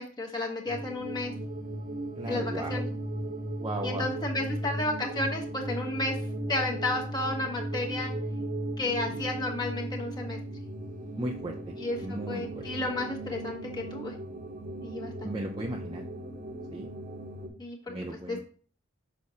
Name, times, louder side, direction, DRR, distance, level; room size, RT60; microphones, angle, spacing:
voice 1, 0.0-1.3 2.3-2.9 3.8-6.2 6.5-8.1 8.8-10.4 11.8-14.1 14.8-15.3 17.6-17.9 18.3-18.4, left 2 dB, 20° left, 0 dB, 1.1 m, -32 dB
sound 1, 0.7-17.5, right 1 dB, 40° right, 1.0 m, -36 dB
voice 2, 2.2-2.8 3.6-4.1 9.1-9.2 11.2-11.8 12.0-12.6 15.2-16.0 16.7-16.9 17.9-18.4, right 1 dB, 20° right, 0 dB, 0.5 m, -36 dB
6.4 x 5.9 x 2.7 m, 0.42 s
head